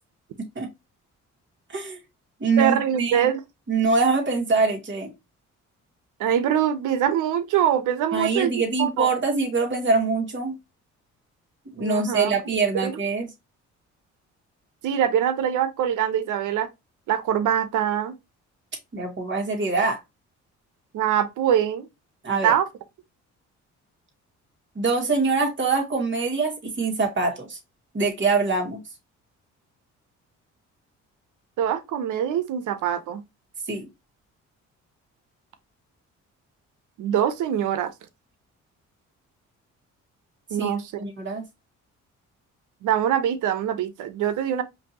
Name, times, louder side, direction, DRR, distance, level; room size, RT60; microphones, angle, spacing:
voice 1, 0.4-0.7 1.7-2.0 2.4-3.3 3.7-5.1 8.1-10.5 11.8-13.3 18.9-20.0 22.2-22.5 24.8-27.6 27.9-28.8 33.7-33.9 40.6-40.7 41.0-41.5, right 4 dB, 40° right, 2.0 m, -24 dB
voice 2, 2.6-3.4 6.2-9.1 11.8-12.4 12.8-13.0 14.8-16.7 17.1-18.1 20.9-21.8 22.4-22.7 31.6-33.2 37.0-37.9 40.5-40.9 42.8-44.6, right 9 dB, 80° right, 0.8 m, -23 dB
5.1 x 2.7 x 2.9 m
cardioid pair, 90°, 30 cm